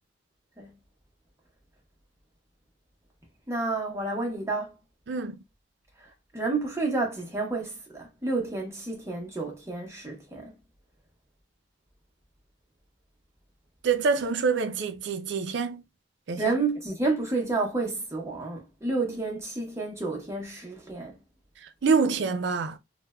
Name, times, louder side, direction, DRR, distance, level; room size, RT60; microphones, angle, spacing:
voice 1, 3.5-4.7 6.0-10.5 16.4-21.2, right 3 dB, 15° right, 0.8 m, -30 dB
voice 2, 13.8-15.8 16.3-16.5 21.8-22.8, right 5 dB, 70° right, 0.4 m, -26 dB
3.1 x 2.2 x 2.2 m
head